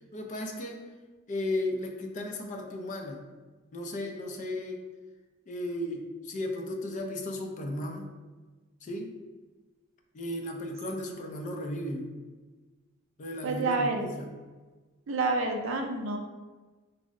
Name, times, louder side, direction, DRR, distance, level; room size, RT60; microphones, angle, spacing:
voice 1, 0.1-0.8 1.3-3.2 3.7-4.8 5.5-8.1 8.8-9.1 10.1-12.1 13.2-14.3, left 1 dB, 35° left, 2 dB, 0.4 m, -35 dB
voice 2, 13.4-14.1 15.1-16.2, right 3 dB, 70° right, 3 dB, 0.4 m, -28 dB
3.5 x 2.0 x 2.5 m, 1.3 s
head